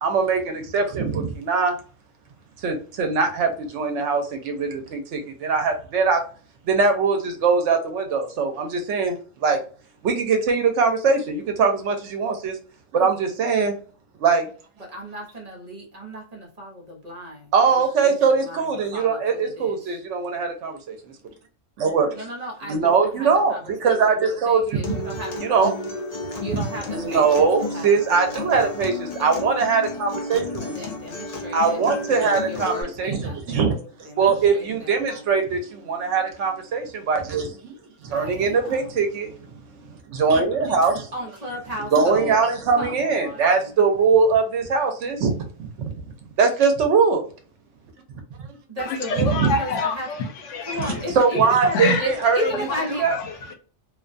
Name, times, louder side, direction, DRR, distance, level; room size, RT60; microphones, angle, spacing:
voice 1, 0.0-1.8 2.6-6.2 6.7-9.6 10.0-12.6 12.9-13.7 14.2-14.5 17.5-21.0 21.8-22.1 22.7-25.0 25.4-25.7 26.5-26.6 26.9-30.8 31.5-37.7 38.0-41.1 41.9-45.9 46.4-47.3 49.2-49.6 50.8-52.4 53.0-53.1, right 5 dB, 75° right, 0.9 m, -21 dB
voice 2, 14.8-20.0 22.1-24.2 24.4-25.3 26.4-27.5 27.7-28.5 29.2-29.3 30.6-31.8 32.4-33.7 34.0-35.3 38.1-38.9 41.1-42.4 42.8-43.7 48.7-50.1 50.6-53.0, equal, 35° right, 0.9 m, -35 dB
Acoustic guitar, 24.8-32.8, left 2 dB, 55° left, 0.4 m, -32 dB
voice 3, 48.8-52.1 52.4-53.5, left 3 dB, 80° left, 0.9 m, -28 dB
2.5 x 2.2 x 2.5 m
omnidirectional pair, 1.3 m